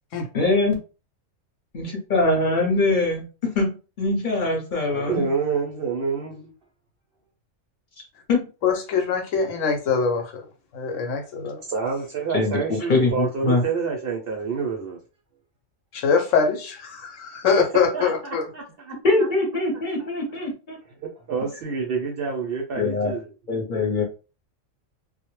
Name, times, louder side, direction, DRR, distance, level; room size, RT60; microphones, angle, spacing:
voice 1, 0.3-0.8 1.7-5.3 8.3-8.5 12.3-13.6 19.0-20.8 22.8-23.1 23.5-24.0, left 2 dB, 45° left, 0.8 m, -23 dB
voice 2, 4.9-6.5 11.7-15.0 17.7-19.3 21.0-23.3, right 5 dB, 60° right, 0.6 m, -28 dB
voice 3, 8.6-10.5 10.7-11.6 15.9-18.4, left 5 dB, 75° left, 0.9 m, -23 dB
2.2 x 2.0 x 3.0 m
omnidirectional pair, 1.3 m